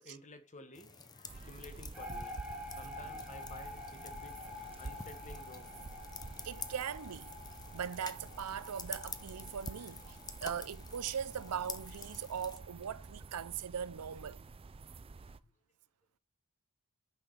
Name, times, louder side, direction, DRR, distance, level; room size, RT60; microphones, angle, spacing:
voice 1, 0.0-2.5 2.8-5.7 6.2-6.5 9.7-9.9 10.3-10.4 14.9-15.0 15.2-15.4, left 2 dB, 35° left, 1.6 m, -54 dB
sound 1, 0.7-12.6, left 5 dB, 20° left, 0.8 m, -50 dB
sound 2, 1.3-15.4, right 3 dB, 25° right, 0.4 m, -50 dB
sound 3, 1.9-13.1, left 2 dB, 5° right, 2.5 m, -50 dB
voice 2, 6.4-7.3 7.7-14.4, right 8 dB, 85° right, 0.5 m, -40 dB
9.5 x 6.1 x 3.3 m
head